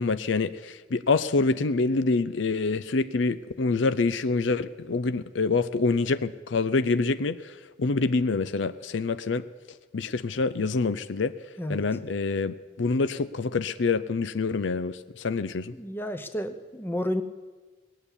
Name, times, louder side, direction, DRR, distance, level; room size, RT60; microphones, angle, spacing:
voice 1, 0.0-9.4 9.9-11.3 11.7-15.7, left 3 dB, 70° left, 13 dB, 0.5 m, -26 dB
voice 2, 15.7-17.2, equal, 10° left, 8 dB, 0.8 m, -31 dB
19.5 x 7.1 x 9.8 m, 1.3 s
head